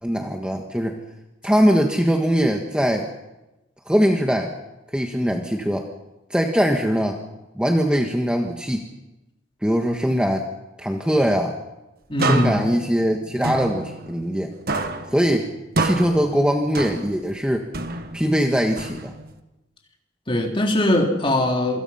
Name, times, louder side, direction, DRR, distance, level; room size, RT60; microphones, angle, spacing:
voice 1, 0.0-1.0 1.4-3.1 3.9-4.5 4.9-5.8 6.3-7.2 7.5-8.9 9.6-10.5 10.8-11.5 12.2-14.5 15.1-15.5 15.8-17.7 18.1-19.1, equal, 5° right, 2 dB, 1.5 m, -21 dB
voice 2, 12.1-12.6 20.3-21.8, left 1 dB, 25° left, 2 dB, 3.4 m, -21 dB
sound 1, 12.2-14.4 14.7-17.3 17.7-19.4, right 3 dB, 50° right, 1.7 m, -28 dB
26.5 x 25.0 x 5.8 m, 0.98 s
head